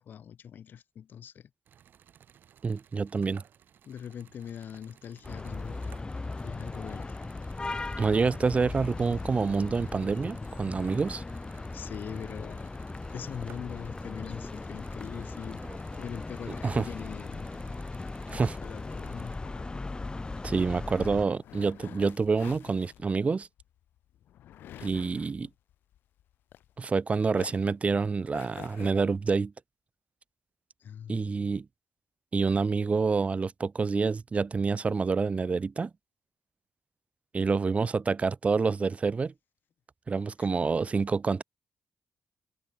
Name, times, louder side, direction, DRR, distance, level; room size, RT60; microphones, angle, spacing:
voice 1, 0.0-1.5 3.9-6.0 6.4-7.1 11.7-12.7 13.1-15.6 16.0-17.5 18.3-19.3 30.8-31.3 40.4-40.5, left 8 dB, 70° left, 2.7 m, -42 dB
sound 1, 1.7-19.4, right 9 dB, 75° right, 6.4 m, -58 dB
voice 2, 2.6-3.4 8.0-11.2 16.6-16.8 18.3-18.6 20.4-23.5 24.8-25.5 26.8-29.5 31.1-31.7 32.3-35.9 37.3-39.3 40.1-41.4, right 4 dB, 40° right, 1.2 m, -27 dB
sound 2, 5.2-21.2, left 3 dB, 25° left, 1.2 m, -38 dB
sound 3, 18.4-27.0 27.3-28.9, left 12 dB, 90° left, 2.7 m, -49 dB
cardioid pair, 65°, 3 cm